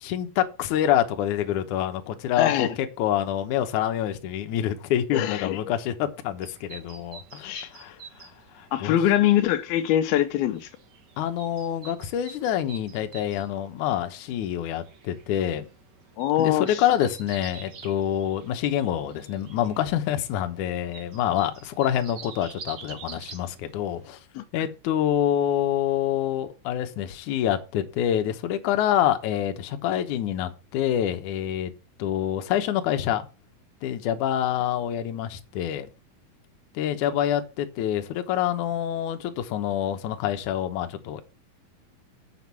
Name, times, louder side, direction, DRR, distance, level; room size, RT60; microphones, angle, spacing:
voice 1, 0.0-2.7 3.0-8.3 8.5-9.0 11.2-15.7 16.4-24.2 24.5-31.7 32.0-33.2 33.8-35.9 36.7-41.2, left 10 dB, 65° left, 2.3 m, -26 dB
voice 2, 2.4-2.8 5.1-5.7 7.4-7.7 8.7-10.7 16.2-16.8 24.4-24.5, left 12 dB, 90° left, 2.8 m, -23 dB
sound 1, 6.4-24.1, right 5 dB, 80° right, 0.9 m, -48 dB
7.9 x 6.3 x 7.0 m
omnidirectional pair, 4.2 m